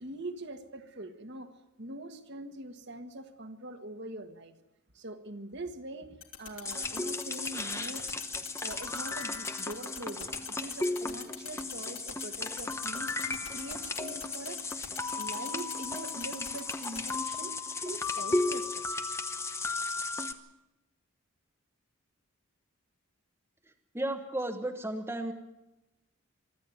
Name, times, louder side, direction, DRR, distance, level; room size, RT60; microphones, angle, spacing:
voice 1, 0.0-1.5 1.8-4.5 4.9-8.2 8.6-14.9 15.1-18.8, right 1 dB, 50° right, 6 dB, 1.6 m, -43 dB
sound 1, 6.2-17.1, left 9 dB, 60° left, 3.1 m, -43 dB
sound 2, 6.7-20.3, left 3 dB, 10° left, 0.8 m, -35 dB
voice 2, 23.9-25.3, right 1 dB, 10° right, 4 dB, 1.2 m, -33 dB
24.0 x 13.0 x 9.4 m, 0.98 s
head